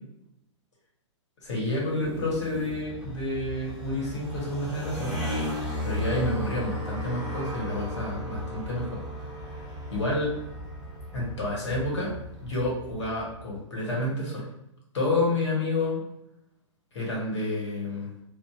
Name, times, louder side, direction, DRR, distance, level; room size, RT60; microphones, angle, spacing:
voice 1, 1.4-5.2 5.8-9.0 9.9-10.4 11.1-12.1 12.4-14.5 14.9-16.0 16.9-18.1, left 2 dB, 65° left, -4 dB, 1.1 m, -29 dB
sound 1, 1.4-3.0 3.4-3.5 3.7-3.8 4.9-5.9 6.5-6.7, right 3 dB, 30° right, 0.4 m, -44 dB
sound 2, 2.0-13.5, left 1 dB, 5° right, 1.3 m, -36 dB
2.6 x 2.1 x 2.3 m, 0.81 s
figure-of-eight pair, 110°, 16 cm